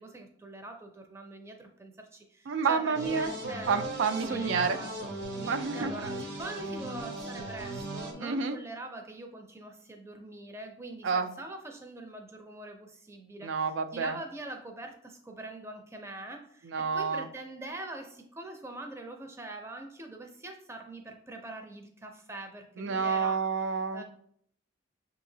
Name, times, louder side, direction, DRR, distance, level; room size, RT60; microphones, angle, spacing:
voice 1, 0.0-3.7 4.2-4.9 5.3-13.5 13.9-23.4 23.9-24.0, right 2 dB, 15° right, 3 dB, 0.5 m, -43 dB
voice 2, 2.5-3.3 3.7-4.8 5.5-5.9 8.2-8.6 11.0-11.3 13.4-14.2 16.6-17.3 22.8-24.0, right 5 dB, 85° right, 9 dB, 0.4 m, -29 dB
sound 1, 2.9-8.1, right 1 dB, 65° right, 0.8 m, -37 dB
6.5 x 2.8 x 2.7 m, 0.64 s
head